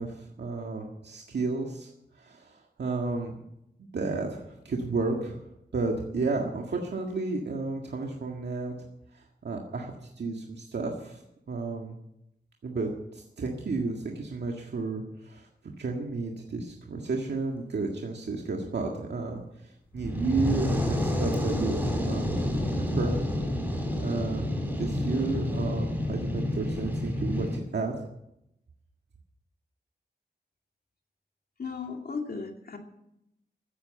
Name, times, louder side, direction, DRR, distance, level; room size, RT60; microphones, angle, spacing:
voice 1, 0.0-3.4 3.8-5.5 5.7-8.7 9.1-12.0 12.6-22.5 22.8-23.3 23.7-24.5 24.8-27.9, right 3 dB, 80° right, 0 dB, 1.8 m, -32 dB
Fire, 19.9-27.6, left 1 dB, 10° right, 6.3 m, -29 dB
voice 2, 31.6-32.8, left 4 dB, 60° left, 3 dB, 2.5 m, -35 dB
14.5 x 10.5 x 7.9 m, 0.82 s
wide cardioid pair, 100°, 17 cm